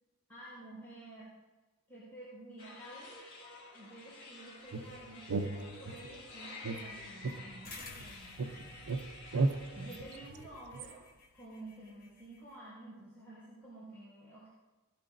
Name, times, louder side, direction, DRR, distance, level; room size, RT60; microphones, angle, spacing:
voice 1, 0.3-1.3 1.9-8.8 9.7-11.0 11.3-14.5, right 1 dB, 10° left, -11 dB, 4.8 m, -51 dB
sound 1, 2.6-10.3, left 3 dB, 90° left, 2.7 m, -51 dB
sound 2, 4.7-6.2 6.6-8.1 8.4-10.9, right 3 dB, 85° right, 0.6 m, -36 dB
sound 3, 7.6-12.6, left 3 dB, 45° left, 1.3 m, -54 dB
18.0 x 12.5 x 2.6 m, 1.2 s
head